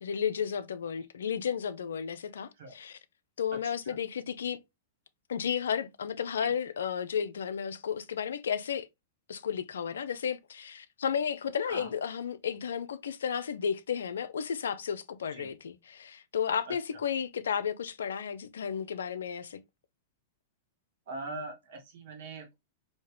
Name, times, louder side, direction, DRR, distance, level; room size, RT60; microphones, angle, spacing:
voice 1, 0.0-3.0 3.4-4.6 5.3-8.9 9.3-19.6, left 7 dB, 80° left, 0.4 m, -33 dB
voice 2, 3.6-4.0 6.4-6.5 11.7-11.9 15.3-15.5 16.6-16.7 21.1-22.5, right 2 dB, 65° right, 1.5 m, -42 dB
3.2 x 2.7 x 3.2 m
hypercardioid pair, 110°, 0 cm